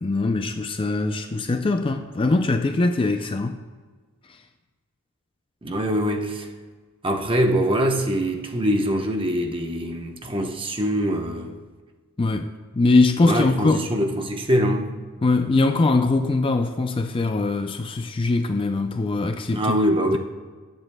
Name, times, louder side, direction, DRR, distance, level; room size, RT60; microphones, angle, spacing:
voice 1, 0.0-3.6 12.2-13.9 15.2-19.6, left 3 dB, 25° left, 0.4 m, -22 dB
voice 2, 5.6-6.5 7.0-11.5 13.2-14.9 19.5-20.2, equal, 25° right, 0.9 m, -23 dB
19.0 x 8.0 x 2.2 m
head